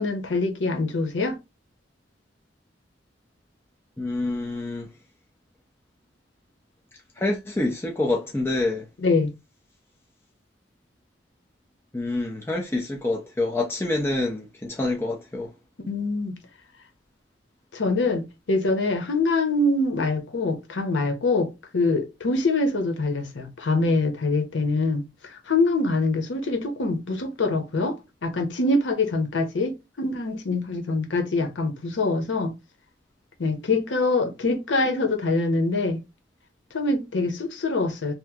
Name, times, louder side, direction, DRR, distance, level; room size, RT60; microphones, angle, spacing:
voice 1, 0.0-1.4 9.0-9.3 15.9-16.4 17.7-28.0 28.2-32.5 33.4-36.0 36.7-38.1, left 3 dB, 90° left, 0.7 m, -24 dB
voice 2, 4.0-4.9 7.2-8.9 11.9-15.5, left 2 dB, 15° left, 0.5 m, -27 dB
2.9 x 2.0 x 3.4 m
head